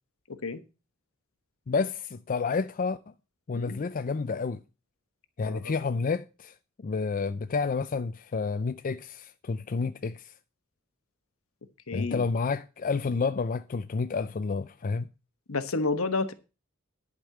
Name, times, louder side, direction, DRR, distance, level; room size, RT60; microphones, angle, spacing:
voice 1, 0.3-0.6 3.5-3.8 5.4-5.7 11.9-12.2 15.5-16.3, left 3 dB, 70° left, 1.2 m, -30 dB
voice 2, 1.7-3.0 3.5-4.6 5.4-6.5 6.8-10.2 11.9-15.1, left 4 dB, 40° left, 0.4 m, -30 dB
11.0 x 5.3 x 7.5 m
head